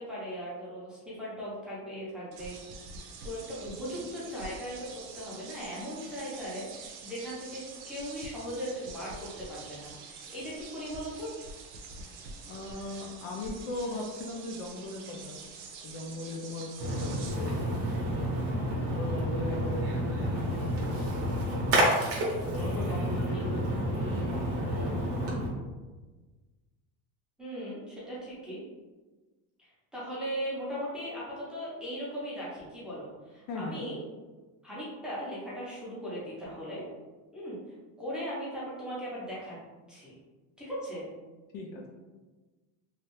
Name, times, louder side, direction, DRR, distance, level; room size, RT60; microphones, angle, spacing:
voice 1, 0.0-2.5 3.2-4.9 5.1-11.3 23.3-23.5 27.4-28.6 29.6-34.0 34.6-36.8 37.3-37.6 38.0-39.6 39.9-40.2 40.6-41.1, equal, ahead, -9 dB, 0.6 m, -38 dB
sound 1, 2.3-17.3, right 4 dB, 85° right, 0.7 m, -46 dB
voice 2, 12.5-15.4 15.8-17.5 18.6-21.1 22.4-23.7 23.9-25.1 33.5-33.8 41.5-41.9, left 2 dB, 50° left, 0 dB, 0.5 m, -38 dB
Splash splatter, 16.8-25.5, equal, 35° right, 0.8 m, -30 dB
3.2 x 2.4 x 3.0 m, 1.3 s
cardioid pair, 170°, 41 cm